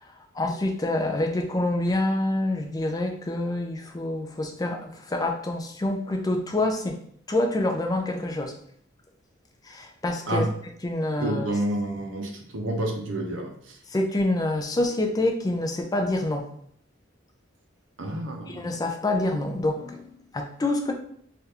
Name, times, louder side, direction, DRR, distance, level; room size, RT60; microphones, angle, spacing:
voice 1, 0.3-7.0 7.3-8.5 9.7-10.5 10.8-11.5 13.9-16.5 18.5-20.9, left 2 dB, 20° left, 3 dB, 0.4 m, -27 dB
voice 2, 11.2-13.8 18.0-18.6, right 1 dB, 65° right, 2 dB, 0.6 m, -29 dB
3.3 x 2.4 x 2.8 m, 0.63 s
head